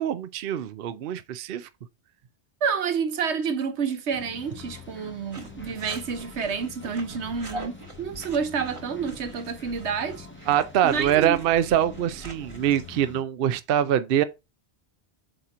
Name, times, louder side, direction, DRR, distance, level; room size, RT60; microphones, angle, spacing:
voice 1, 0.0-1.7 10.5-14.2, right 10 dB, 65° right, 0.7 m, -24 dB
voice 2, 2.6-10.3 10.8-11.4, right 6 dB, 85° right, 1.2 m, -29 dB
sound 1, 4.1-13.2, left 5 dB, 15° left, 0.6 m, -45 dB
sound 2, 5.3-12.9, right 2 dB, 30° right, 1.2 m, -43 dB
7.8 x 2.9 x 4.8 m
omnidirectional pair, 1.1 m